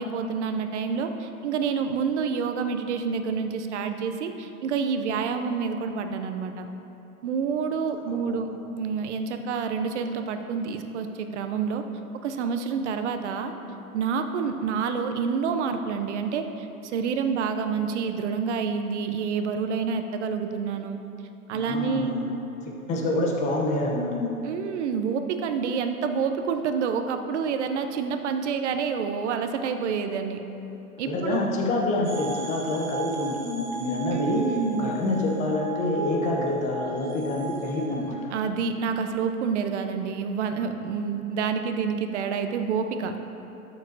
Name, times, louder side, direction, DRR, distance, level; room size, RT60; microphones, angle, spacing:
voice 1, 0.0-6.7 7.2-8.5 8.8-11.8 12.2-13.5 13.9-16.7 16.9-21.0 21.5-22.2 24.5-30.4 31.0-31.4 34.1-34.9 38.3-43.1, right 6 dB, 50° right, 7 dB, 0.7 m, -28 dB
voice 2, 8.1-8.6 21.5-22.3 22.6-24.4 31.1-38.3, left 2 dB, 15° left, -1 dB, 0.8 m, -27 dB
sound 1, 32.0-38.1, right 4 dB, 70° right, 1.2 m, -36 dB
12.0 x 6.8 x 2.7 m, 3.0 s
hypercardioid pair, 135°, 45 cm